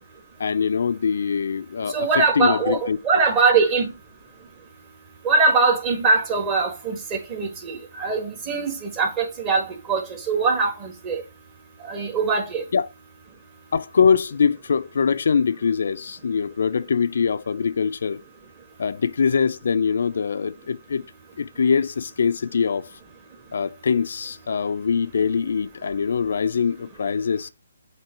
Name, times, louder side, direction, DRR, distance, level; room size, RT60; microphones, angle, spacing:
voice 1, 0.4-3.0 12.7-12.9 13.7-18.2 18.8-21.0 21.4-23.0 23.5-27.5, left 6 dB, 60° left, 0.5 m, -23 dB
voice 2, 1.9-3.9 5.2-11.2 11.8-12.6, right 4 dB, 25° right, 1.6 m, -22 dB
7.5 x 2.9 x 4.5 m
hypercardioid pair, 150°, 0 cm